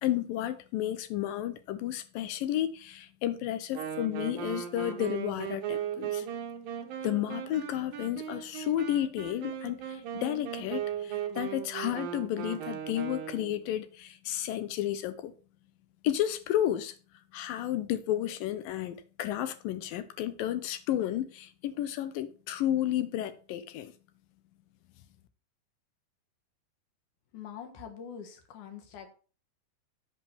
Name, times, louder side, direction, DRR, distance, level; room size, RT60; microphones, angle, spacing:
voice 1, 0.0-6.3 7.0-15.3 16.0-17.0 17.3-23.9, left 12 dB, 75° left, 2.2 m, -32 dB
Wind instrument woodwind instrument, 3.7-13.6, right 10 dB, 70° right, 2.6 m, -37 dB
voice 2, 27.3-29.1, left 7 dB, 60° left, 2.6 m, -44 dB
8.2 x 5.1 x 7.0 m
omnidirectional pair, 4.6 m